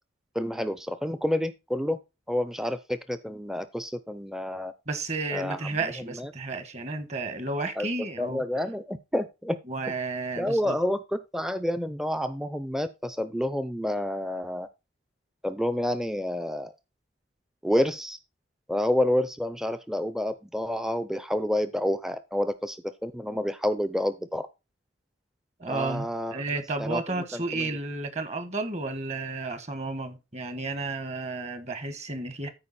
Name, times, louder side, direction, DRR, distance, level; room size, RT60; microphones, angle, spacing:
voice 1, 0.3-2.0 2.3-4.7 5.3-5.6 6.2-6.3 7.8-7.9 8.2-9.6 10.4-14.7 15.4-16.7 17.6-18.2 18.7-24.5 25.7-26.4 26.8-27.0 27.3-27.7, left 1 dB, ahead, 0.5 m, -29 dB
voice 2, 4.9-8.4 9.7-10.8 25.6-32.5, right 3 dB, 35° right, 1.3 m, -32 dB
13.5 x 4.7 x 4.2 m
head